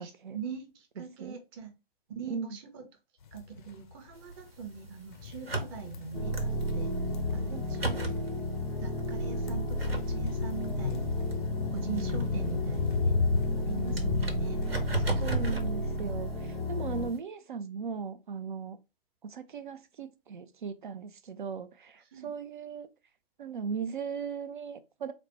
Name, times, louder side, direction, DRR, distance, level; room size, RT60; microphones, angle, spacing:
voice 1, 0.0-1.7 2.1-2.8 3.3-6.9 7.3-8.1 8.8-11.3 11.7-13.2 13.6-14.6 14.9-15.4 22.1-22.3, right 6 dB, 25° right, 0.7 m, -42 dB
sound 1, 3.2-4.1 4.6-15.5, left 4 dB, 55° left, 0.6 m, -35 dB
sound 2, 4.1-17.2, right 3 dB, 80° right, 1.1 m, -40 dB
sound 3, 6.1-17.1, left 1 dB, ahead, 0.4 m, -33 dB
voice 2, 15.2-18.8 19.2-22.9 23.4-25.1, right 6 dB, 55° right, 0.5 m, -38 dB
4.0 x 2.1 x 4.3 m
figure-of-eight pair, 125°, 30 cm